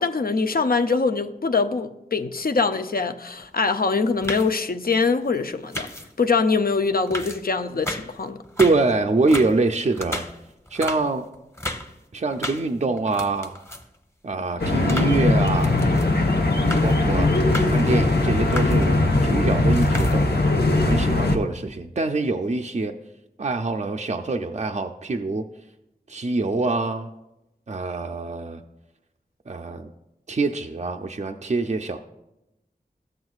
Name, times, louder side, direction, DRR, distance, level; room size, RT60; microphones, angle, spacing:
voice 1, 0.0-5.9 6.2-8.4, left 4 dB, 65° left, 0.5 m, -23 dB
sound 1, 3.4-3.6 4.0-4.6 5.7-6.2 6.7-6.8 7.1-8.2 8.4-8.9 9.2-12.0 12.3-12.7 13.0-13.9 14.3-16.1 16.5-17.0 17.3-17.9 18.3-18.9 19.6-20.4 20.9-21.2, left 1 dB, 15° left, 0.9 m, -34 dB
voice 2, 8.6-10.2 10.7-11.3 12.1-13.5 14.2-15.8 16.8-17.3 17.7-19.0 19.2-20.2 20.8-22.9 23.4-25.5 26.1-27.1 27.7-28.6 29.5-29.9 30.3-32.0, right 3 dB, 45° right, 0.4 m, -24 dB
sound 2, 14.6-21.4, left 2 dB, 85° left, 1.0 m, -20 dB
13.0 x 7.8 x 2.4 m
wide cardioid pair, 50°, 16 cm